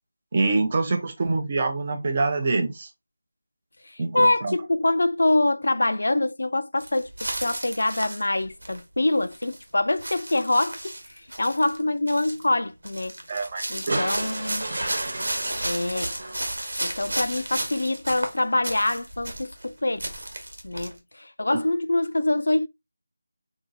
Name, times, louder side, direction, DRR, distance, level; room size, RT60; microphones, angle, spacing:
voice 1, 0.3-2.9 4.0-4.5 13.3-14.0 21.5-21.6, right 3 dB, 25° right, 0.5 m, -25 dB
voice 2, 3.9-7.1 7.4-10.9 11.4-13.1 13.7-14.7 15.6-16.1 16.8-20.1 20.6-22.7, left 2 dB, 75° left, 0.4 m, -25 dB
sound 1, 6.8-8.8 9.2-9.6 10.0-11.8 12.1-12.5 12.8-19.7 20.0-20.9, right 1 dB, 80° right, 1.2 m, -33 dB
sound 2, 13.9-17.2 18.5-18.6, right 2 dB, 60° right, 1.1 m, -33 dB
3.8 x 2.7 x 2.5 m
figure-of-eight pair, 175°, 0 cm